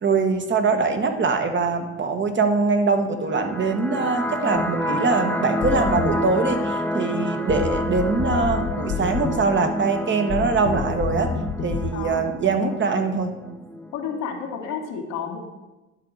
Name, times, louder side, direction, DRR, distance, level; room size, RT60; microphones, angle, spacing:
voice 1, 0.0-11.3 11.6-13.3, right 4 dB, 40° right, 6 dB, 1.3 m, -23 dB
sound 1, 3.2-14.2, equal, 5° left, 0.5 m, -29 dB
sound 2, 4.6-4.7 5.6-6.2 7.5-9.3 10.3-11.9, left 6 dB, 55° left, 1.2 m, -29 dB
voice 2, 11.9-12.3 13.9-15.4, left 6 dB, 90° left, -1 dB, 1.5 m, -31 dB
10.5 x 3.8 x 7.2 m, 1.1 s
cardioid pair, 90°, 31 cm